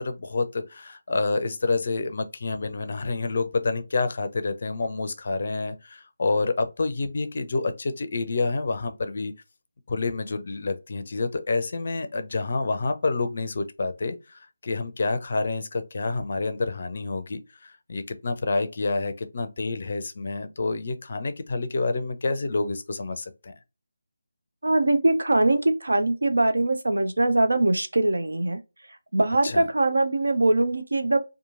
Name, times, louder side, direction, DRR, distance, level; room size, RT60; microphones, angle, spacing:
voice 1, 0.0-9.3 9.9-23.5 29.4-29.7, left 3 dB, 45° left, 0.4 m, -28 dB
voice 2, 24.6-28.6 29.1-31.2, right 2 dB, 70° right, 0.5 m, -22 dB
2.9 x 2.4 x 2.4 m
figure-of-eight pair, 155°, 0 cm